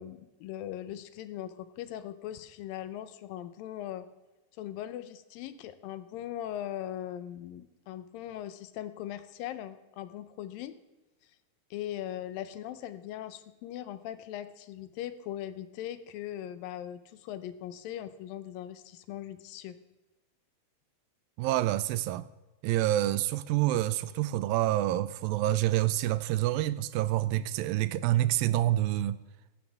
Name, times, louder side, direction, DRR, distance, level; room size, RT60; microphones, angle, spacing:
voice 1, 0.0-4.1 4.6-10.7 11.7-19.8, left 11 dB, 80° left, 2.4 m, -40 dB
voice 2, 21.4-22.3 22.6-29.2, right 14 dB, 85° right, 2.3 m, -27 dB
14.5 x 11.5 x 3.5 m
omnidirectional pair, 4.2 m